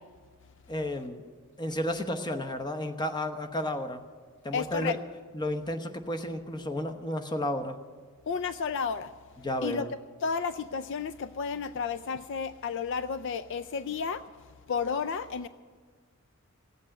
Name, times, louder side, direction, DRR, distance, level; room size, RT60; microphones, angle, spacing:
voice 1, 0.7-1.2 1.6-4.0 4.4-5.0 5.3-7.8 9.4-9.9, left 1 dB, 20° left, 6 dB, 1.0 m, -32 dB
voice 2, 4.5-5.0 8.3-9.1 9.6-14.2 14.7-15.5, left 5 dB, 60° left, 12 dB, 0.4 m, -32 dB
16.5 x 8.3 x 10.0 m, 1.5 s
head